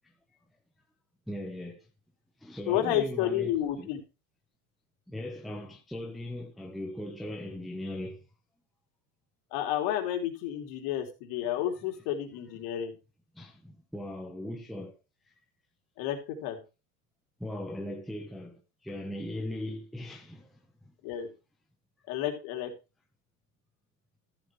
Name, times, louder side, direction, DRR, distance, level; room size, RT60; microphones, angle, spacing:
voice 1, 1.3-1.9 2.4-3.9 5.1-8.2 13.3-15.0 17.4-20.6 20.9-21.0, left 1 dB, ahead, 0.8 m, -39 dB
voice 2, 2.7-4.0 9.5-12.9 16.0-16.6 21.0-21.3 22.1-22.7, left 11 dB, 50° left, 3.2 m, -31 dB
14.0 x 7.7 x 3.2 m
supercardioid pair, 140°, 46 cm